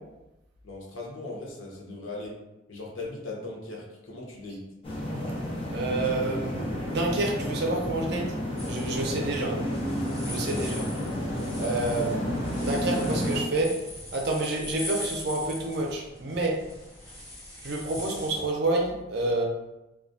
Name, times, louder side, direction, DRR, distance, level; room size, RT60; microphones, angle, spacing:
voice 1, 0.6-2.3 2.7-4.6 9.1-9.3 10.2-10.7, left 2 dB, 90° left, -2 dB, 0.7 m, -39 dB
sound 1, 4.8-13.4, equal, 30° left, 0.4 m, -31 dB
voice 2, 5.7-8.3 8.7-9.5 10.3-10.8 11.6-12.2 12.6-13.7 14.1-16.6 17.6-19.4, right 2 dB, 55° right, -1 dB, 0.5 m, -28 dB
sound 2, 8.6-18.5, left 1 dB, 5° left, 1.1 m, -42 dB
2.3 x 2.2 x 2.5 m, 0.97 s
head